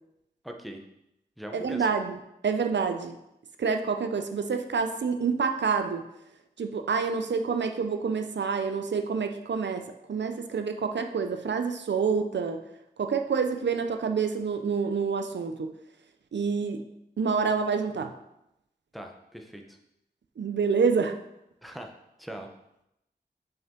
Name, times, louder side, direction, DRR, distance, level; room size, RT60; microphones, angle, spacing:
voice 1, 0.4-0.8 1.4-1.9 18.9-19.8 21.6-21.9 22.2-22.5, right 1 dB, ahead, 3 dB, 0.8 m, -40 dB
voice 2, 1.5-2.2 2.4-3.2 3.6-6.0 6.6-12.6 13.0-15.7 16.3-16.8 17.2-18.1 20.4-21.1, right 5 dB, 85° right, 6 dB, 0.5 m, -27 dB
5.7 x 5.3 x 3.7 m, 0.85 s
wide cardioid pair, 55°, 18 cm